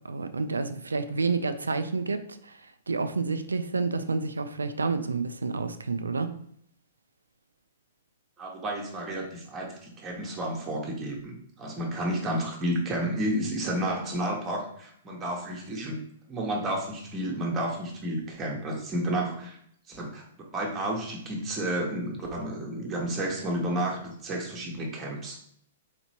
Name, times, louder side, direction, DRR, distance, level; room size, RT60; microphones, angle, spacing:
voice 1, 0.0-6.3, right 4 dB, 85° right, 9 dB, 0.3 m, -29 dB
voice 2, 8.4-16.0 16.3-19.6 19.9-25.5, right 1 dB, 20° right, -1 dB, 1.0 m, -31 dB
4.1 x 2.9 x 2.8 m, 0.68 s
figure-of-eight pair, 110°, 0 cm